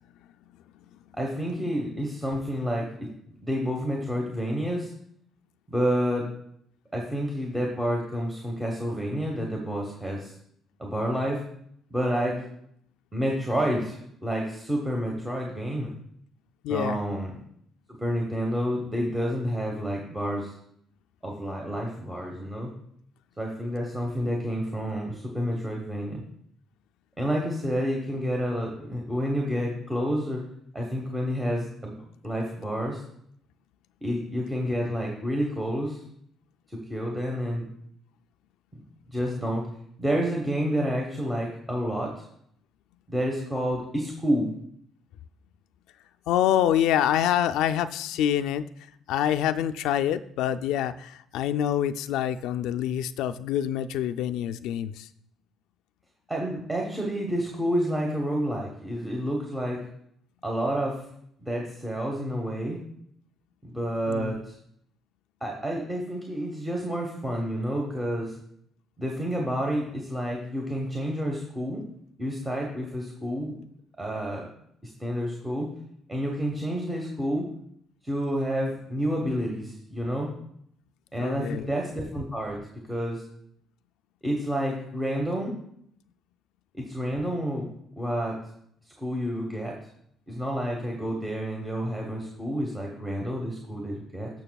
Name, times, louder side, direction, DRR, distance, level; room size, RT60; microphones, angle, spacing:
voice 1, 1.1-3.1 3.4-4.9 5.7-6.3 6.9-10.3 10.8-11.4 11.9-12.4 13.1-15.9 16.7-17.3 18.0-20.6 21.2-22.7 23.4-26.2 27.2-30.4 30.7-31.9 32.2-33.0 34.0-36.0 36.7-37.7 38.7-38.8 39.1-39.6 40.0-42.2 43.1-44.5 56.3-59.8 60.4-61.0 61.4-62.8 63.6-64.5 65.4-68.3 69.0-71.8 72.2-73.5 74.0-74.5 74.8-75.7 76.1-77.5 78.0-80.3 81.1-82.6 82.9-83.3 84.2-85.5 86.8-87.7 88.0-88.4 89.0-89.7 90.3-94.3, equal, 10° right, -1 dB, 1.1 m, -29 dB
voice 2, 16.6-17.0 46.3-48.7 49.1-55.1 64.1-64.4 81.2-81.7, left 10 dB, 90° left, 10 dB, 0.4 m, -26 dB
15.5 x 6.0 x 2.3 m, 0.70 s
cardioid pair, 140°, 0 cm